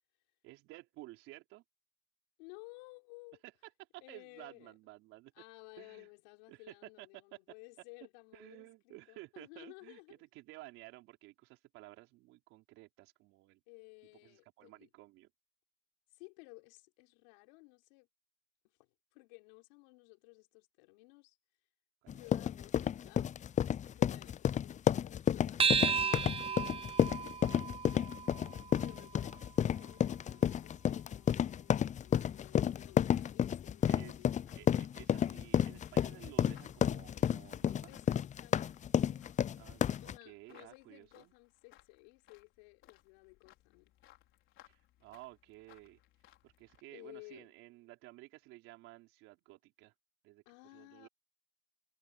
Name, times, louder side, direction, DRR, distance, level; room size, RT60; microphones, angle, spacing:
voice 1, 0.4-1.6 3.4-5.3 5.8-6.1 6.5-7.4 8.3-13.6 14.2-15.3 22.0-22.6 28.3-28.6 33.9-34.3 34.5-38.0 39.6-41.3 44.7-46.0 46.4-49.9 50.2-51.1, right 19 dB, 80° right, 4.2 m, -54 dB
voice 2, 2.4-3.4 4.0-4.7 5.3-10.1 13.7-14.9 16.1-18.1 18.8-21.4 22.1-23.3 23.9-27.3 28.8-34.4 37.9-38.7 39.0-39.3 40.0-43.9 46.9-47.5 50.4-51.1, left 29 dB, 90° left, 5.0 m, -56 dB
sound 1, 22.1-40.2, left 9 dB, 35° left, 0.4 m, -31 dB
sound 2, 25.6-30.4, right 6 dB, 25° right, 0.5 m, -35 dB
sound 3, 32.0-46.8, left 14 dB, 70° left, 4.7 m, -66 dB
hypercardioid pair, 60°, 21 cm